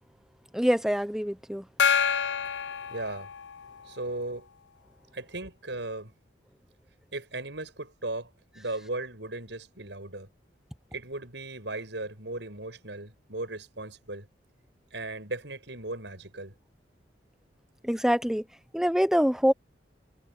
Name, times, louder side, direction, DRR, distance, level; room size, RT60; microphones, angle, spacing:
voice 1, 0.5-1.7 17.8-18.4 18.7-19.5, equal, 5° right, 0.8 m, -25 dB
Gong, 1.8-3.8, left 7 dB, 80° left, 0.6 m, -27 dB
voice 2, 2.9-3.3 3.9-4.5 5.1-6.1 7.1-10.3 10.9-14.3 14.9-16.5, right 2 dB, 75° right, 6.4 m, -37 dB
head